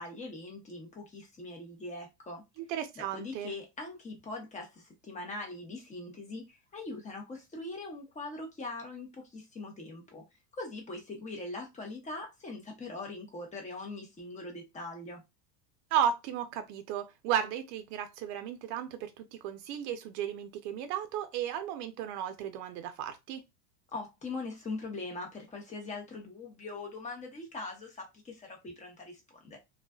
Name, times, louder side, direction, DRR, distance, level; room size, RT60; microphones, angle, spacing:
voice 1, 0.0-2.4 3.0-10.2 10.5-15.2 23.9-29.6, left 2 dB, 15° left, 0.8 m, -41 dB
voice 2, 2.6-3.5 15.9-23.4, right 9 dB, 60° right, 0.7 m, -34 dB
2.4 x 2.3 x 2.2 m
supercardioid pair, 125°, 49 cm